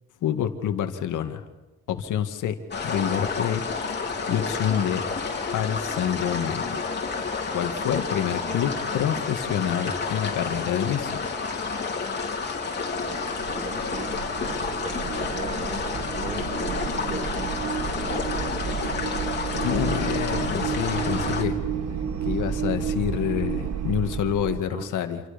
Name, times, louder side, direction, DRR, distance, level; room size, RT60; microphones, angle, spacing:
voice 1, 0.2-1.4 1.9-2.6 2.8-3.6 4.3-5.0 5.5-6.6 7.5-11.2 19.6-21.6 22.2-25.2, left 9 dB, 80° left, 7 dB, 2.2 m, -27 dB
sound 1, 2.7-21.4, left 4 dB, 35° left, 4.3 m, -30 dB
sound 2, 12.8-24.6, right 7 dB, 60° right, 1.9 m, -31 dB
voice 2, 13.0-14.1 14.4-18.3 24.7-25.0, right 2 dB, 20° right, 8 dB, 1.5 m, -40 dB
28.5 x 27.5 x 5.3 m, 1.1 s
cardioid pair, 90°, 30 cm